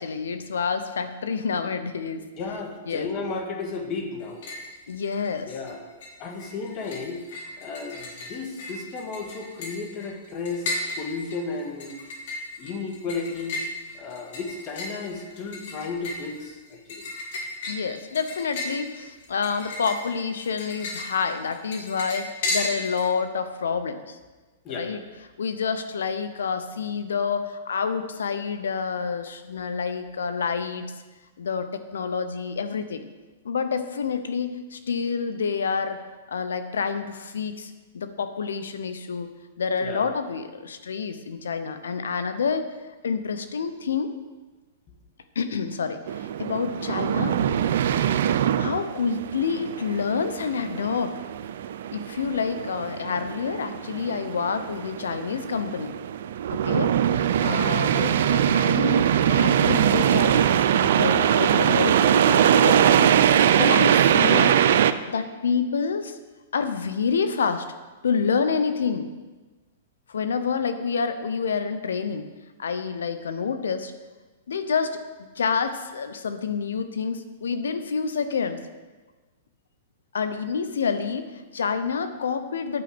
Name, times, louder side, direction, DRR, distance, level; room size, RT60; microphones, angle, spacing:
voice 1, 0.0-2.2 2.9-3.1 4.9-5.5 17.7-24.2 24.7-25.0 25.4-30.9 31.4-33.1 33.4-36.0 36.3-39.3 39.6-42.7 43.0-44.1 45.3-47.4 48.6-51.2 51.9-55.9 56.5-56.9 57.4-63.1 63.6-64.5 65.0-66.2 66.5-67.6 68.0-69.1 70.1-72.3 72.6-73.9 74.5-78.6 80.1-82.8, left 5 dB, 90° left, 10 dB, 0.9 m, -28 dB
voice 2, 2.4-4.4 5.5-5.9 6.2-7.2 7.6-11.9 12.6-13.6 13.9-17.0 24.6-24.9 39.8-40.0, left 4 dB, 35° left, 2 dB, 1.9 m, -33 dB
sound 1, 4.2-4.7 5.0-5.7 6.0-23.1, left 2 dB, 60° left, 2.5 m, -35 dB
sound 2, 46.1-64.9, right 9 dB, 65° right, 0.5 m, -22 dB
9.0 x 5.2 x 7.8 m, 1.3 s
hypercardioid pair, 140°, 0 cm